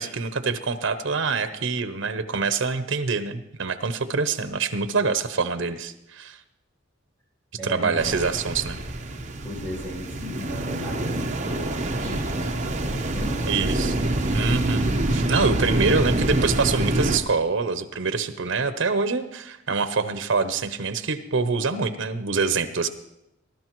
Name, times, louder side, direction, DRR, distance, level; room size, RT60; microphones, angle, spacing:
voice 1, 0.0-6.4 7.6-8.8 13.5-14.0 14.3-22.9, right 4 dB, 75° right, 11 dB, 0.7 m, -25 dB
voice 2, 7.6-8.2 9.4-14.0, left 1 dB, 10° left, -4 dB, 6.3 m, -36 dB
sound 1, 8.0-17.2, right 1 dB, 35° right, 0.9 m, -26 dB
20.0 x 12.0 x 3.0 m, 0.86 s
head